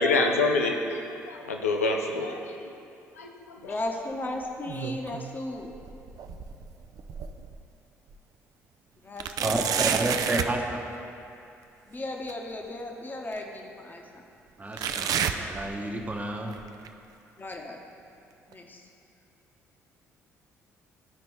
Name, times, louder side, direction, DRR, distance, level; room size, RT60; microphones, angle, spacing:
voice 1, 0.0-2.6 3.1-3.8, left 3 dB, 80° left, 2 dB, 0.5 m, -27 dB
voice 2, 3.6-5.7 9.0-10.0 11.9-14.2 17.4-17.8 18.5-18.9, left 1 dB, 25° left, 1 dB, 1.0 m, -36 dB
sound 1, 4.4-5.3 5.7-7.6 8.1-8.2 9.2-10.6 12.3-12.4 13.3-13.4 14.8-16.2 16.5-16.9 17.5-17.6 18.5-18.6, right 8 dB, 50° right, 0.4 m, -31 dB
voice 3, 9.4-10.8 14.6-16.6, right 2 dB, 20° right, 2 dB, 1.0 m, -30 dB
12.5 x 5.1 x 3.1 m, 2.6 s
figure-of-eight pair, 45°, 8 cm